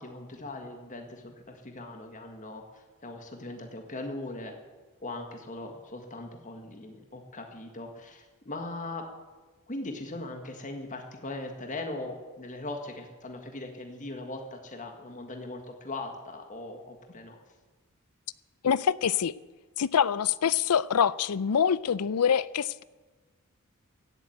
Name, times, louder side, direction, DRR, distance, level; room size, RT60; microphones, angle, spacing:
voice 1, 0.0-4.5 5.0-9.1 9.7-17.4, left 2 dB, 35° left, 4 dB, 1.7 m, -40 dB
voice 2, 18.6-19.3 19.8-22.8, left 7 dB, 85° left, 20 dB, 0.5 m, -25 dB
16.0 x 7.6 x 8.9 m, 1.3 s
head